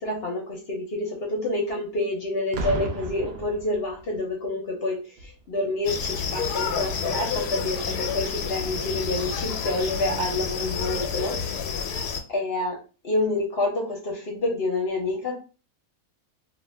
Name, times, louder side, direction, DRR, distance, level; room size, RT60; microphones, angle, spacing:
voice 1, 0.0-11.3 12.3-12.8 13.0-15.4, left 2 dB, 50° left, 1 dB, 0.8 m, -28 dB
Boom, 2.5-4.3 5.2-5.4, right 2 dB, 65° right, 0.6 m, -33 dB
sound 1, 5.9-12.2, left 6 dB, 85° left, 1.1 m, -29 dB
2.7 x 2.5 x 3.2 m, 0.34 s
omnidirectional pair, 1.6 m